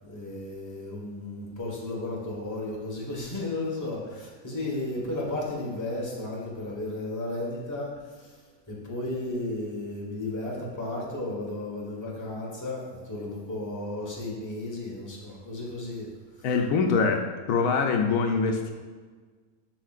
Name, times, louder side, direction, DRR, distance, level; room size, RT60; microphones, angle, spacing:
voice 1, 0.0-16.1 16.4-16.5, left 2 dB, 15° left, -4 dB, 1.2 m, -34 dB
voice 2, 16.4-17.2 17.5-18.7, left 5 dB, 85° left, 3 dB, 1.1 m, -23 dB
7.4 x 5.5 x 2.5 m, 1.5 s
omnidirectional pair, 1.5 m